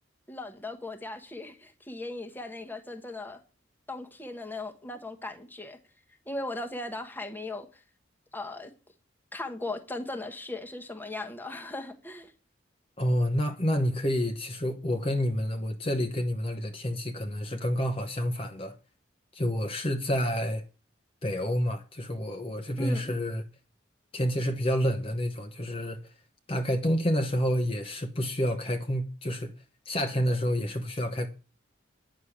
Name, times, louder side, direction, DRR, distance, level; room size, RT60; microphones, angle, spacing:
voice 1, 0.3-3.4 3.9-5.8 6.3-7.8 8.3-8.7 9.3-12.3 22.8-23.1, left 2 dB, 10° left, 1.2 m, -38 dB
voice 2, 13.0-18.8 19.3-20.6 21.2-23.4 24.1-26.0 26.5-29.5 29.9-31.3, equal, 30° left, 1.0 m, -29 dB
9.7 x 6.3 x 8.6 m
head